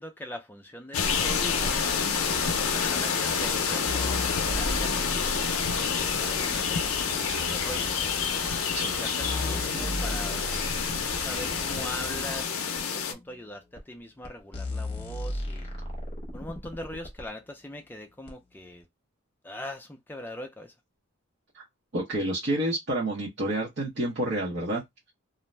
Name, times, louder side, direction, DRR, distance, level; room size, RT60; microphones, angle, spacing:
voice 1, 0.0-2.0 2.6-7.9 8.9-10.8 11.1-15.7 16.3-18.8 19.4-20.7, left 1 dB, 10° left, 0.3 m, -41 dB
sound 1, 0.9-13.1, left 7 dB, 70° left, 0.5 m, -28 dB
sound 2, 1.0-12.5, right 1 dB, 80° right, 1.1 m, -39 dB
sound 3, 3.9-6.6 7.6-7.7 8.5-8.6 8.9-11.9 12.8-12.9 13.8-13.9 14.2-14.3 14.5-17.3 18.3-18.4, left 1 dB, 25° left, 0.8 m, -35 dB
voice 2, 21.9-24.8, right 1 dB, 50° right, 0.8 m, -29 dB
2.5 x 2.1 x 3.1 m
head